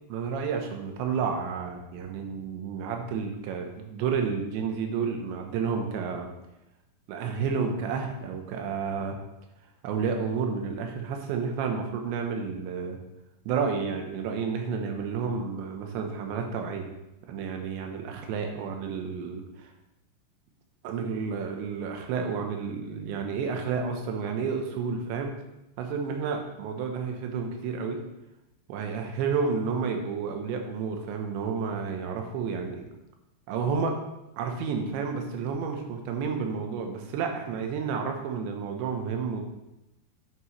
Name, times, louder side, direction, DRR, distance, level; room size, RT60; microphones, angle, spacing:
voice 1, 0.1-6.3 7.1-9.2 9.8-13.0 13.5-16.9 17.3-19.7 20.8-25.3 25.8-28.0 28.7-32.9 33.5-34.0 34.4-39.4, right 5 dB, 80° right, 4 dB, 3.3 m, -31 dB
9.5 x 8.7 x 3.2 m, 0.92 s
omnidirectional pair, 5.2 m